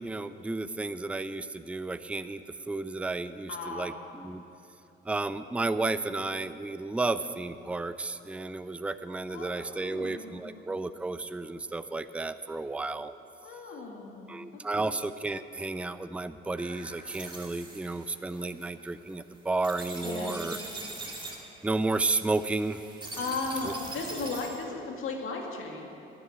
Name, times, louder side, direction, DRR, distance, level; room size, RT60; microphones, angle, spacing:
voice 1, 0.0-4.4 5.0-13.1 14.3-20.6 21.6-22.8 23.6-23.7, right 3 dB, 5° right, 12 dB, 0.4 m, -32 dB
voice 2, 3.5-3.9 9.3-10.6 13.4-14.4 14.7-15.0 20.0-20.4 23.2-25.8, left 3 dB, 75° left, 1 dB, 2.1 m, -36 dB
sound 1, 16.6-24.7, right 2 dB, 20° right, 2.0 m, -43 dB
12.0 x 8.0 x 9.6 m, 2.8 s
cardioid pair, 95°, 21 cm